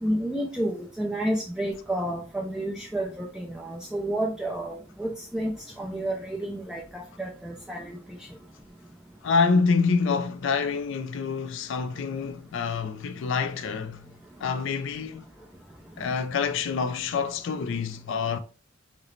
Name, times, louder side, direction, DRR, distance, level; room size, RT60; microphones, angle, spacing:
voice 1, 0.0-5.5 5.8-8.0, right 1 dB, 5° right, 0.4 m, -30 dB
voice 2, 9.2-14.1 14.4-15.2 16.0-18.4, left 5 dB, 65° left, 0.4 m, -26 dB
5.0 x 2.0 x 3.1 m
head